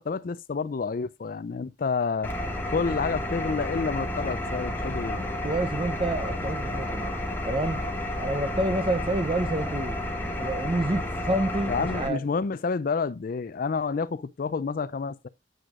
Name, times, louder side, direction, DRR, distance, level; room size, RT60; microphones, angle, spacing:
voice 1, 0.0-2.3 2.7-5.3 11.7-15.3, left 5 dB, 50° left, 0.4 m, -29 dB
Engine, 2.2-12.1, left 1 dB, 10° left, 1.4 m, -31 dB
voice 2, 5.4-7.1 7.4-7.8 8.2-10.0 10.2-12.2, right 1 dB, 30° right, 0.7 m, -28 dB
9.1 x 7.8 x 2.5 m
head